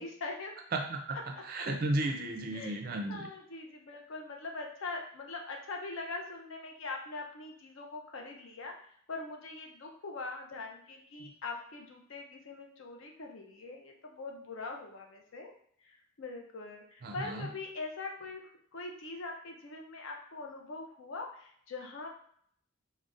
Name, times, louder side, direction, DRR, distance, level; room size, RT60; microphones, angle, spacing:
voice 1, 0.0-0.5 1.3-1.4 2.5-2.8 3.1-8.7 9.1-15.5 15.8-18.4 18.7-22.1, left 3 dB, 60° left, 2 dB, 0.5 m, -42 dB
voice 2, 0.7-1.2 1.4-3.3 11.2-11.3 17.0-17.5, right 2 dB, 40° right, 3 dB, 0.4 m, -34 dB
3.7 x 2.1 x 2.4 m, 0.64 s
head